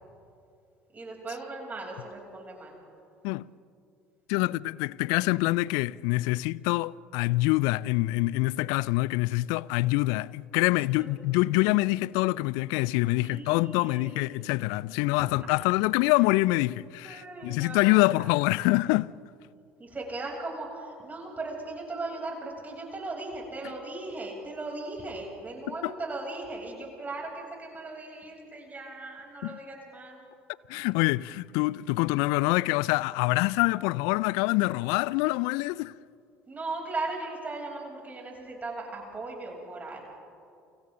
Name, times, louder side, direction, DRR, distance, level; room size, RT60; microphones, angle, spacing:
voice 1, 0.9-2.8 11.0-11.2 13.2-14.2 15.2-15.3 16.0-16.3 17.0-18.3 19.8-30.2 36.5-40.0, right 2 dB, 25° right, 7.4 m, -38 dB
voice 2, 4.3-19.1 25.7-25.9 29.4-29.6 30.7-35.9, left 21 dB, 65° left, 0.4 m, -25 dB
30.0 x 24.5 x 3.9 m
figure-of-eight pair, 60°, 7 cm